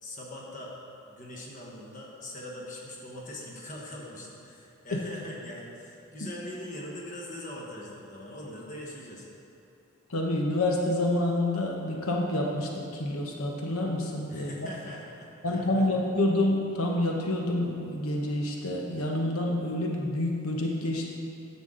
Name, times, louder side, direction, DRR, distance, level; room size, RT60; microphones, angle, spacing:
voice 1, 0.0-0.7 1.1-9.3 14.3-15.9, left 1 dB, 40° left, -3 dB, 1.3 m, -42 dB
voice 2, 10.1-14.7 15.4-21.1, left 1 dB, 90° left, 0 dB, 1.0 m, -28 dB
10.0 x 7.3 x 3.8 m, 2.6 s
head